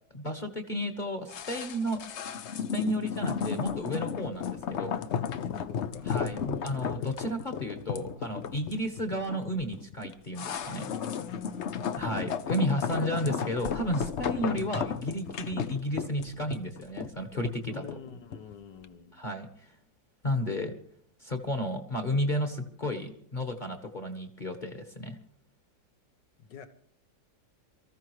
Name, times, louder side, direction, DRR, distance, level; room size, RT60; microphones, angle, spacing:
voice 1, 0.1-2.0 2.5-5.0 6.0-10.9 12.0-17.8 19.1-19.7 20.2-20.7 21.2-25.2, equal, 30° left, 6 dB, 1.3 m, -33 dB
sound 1, 1.3-18.5 18.8-18.9, left 7 dB, 60° left, 0.7 m, -34 dB
voice 2, 5.1-7.1 10.9-12.6 17.7-19.2 26.4-26.7, left 6 dB, 75° left, 10 dB, 1.8 m, -46 dB
23.5 x 14.5 x 3.1 m, 0.66 s
omnidirectional pair, 1.9 m